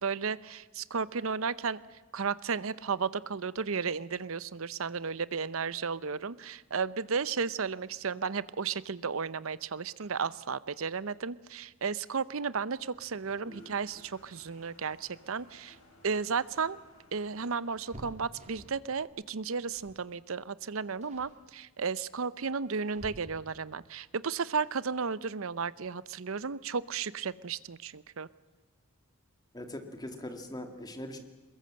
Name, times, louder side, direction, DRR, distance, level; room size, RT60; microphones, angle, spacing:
voice 1, 0.0-15.8 16.0-16.8 17.1-28.3, right 5 dB, 70° right, 18 dB, 0.7 m, -34 dB
Toilet flush, 12.9-19.1, left 1 dB, 75° left, 7.6 m, -58 dB
sound 1, 16.9-18.9 19.7-20.0 20.3-20.6 21.0-21.4 22.2-23.7 25.4-25.5 25.9-26.0 27.2-27.6 27.9-28.0 28.3-28.5, equal, 35° right, 3.8 m, -51 dB
voice 2, 29.5-31.2, left 1 dB, 20° left, 6 dB, 2.2 m, -41 dB
23.0 x 21.5 x 7.7 m, 1.3 s
head